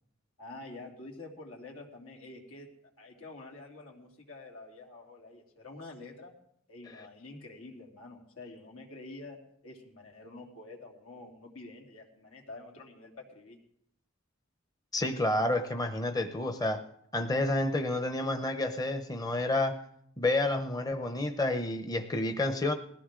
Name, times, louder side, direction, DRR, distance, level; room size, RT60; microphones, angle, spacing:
voice 1, 0.4-2.7 3.0-6.3 6.7-9.4 9.6-13.6, left 2 dB, 85° left, 0 dB, 3.1 m, -47 dB
voice 2, 14.9-16.8 17.1-19.7 20.2-22.7, left 2 dB, 20° left, 7 dB, 0.7 m, -29 dB
20.0 x 14.5 x 3.8 m, 0.71 s
head